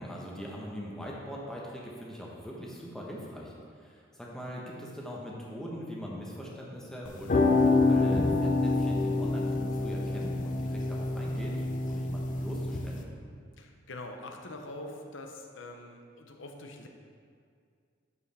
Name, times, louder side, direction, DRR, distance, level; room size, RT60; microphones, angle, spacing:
voice 1, 0.0-13.1, equal, 5° left, -4 dB, 1.0 m, -42 dB
sound 1, 7.1-13.0, left 3 dB, 45° left, 0.5 m, -27 dB
voice 2, 13.6-16.9, left 2 dB, 90° left, 3 dB, 0.8 m, -44 dB
11.0 x 4.8 x 3.4 m, 2.2 s
head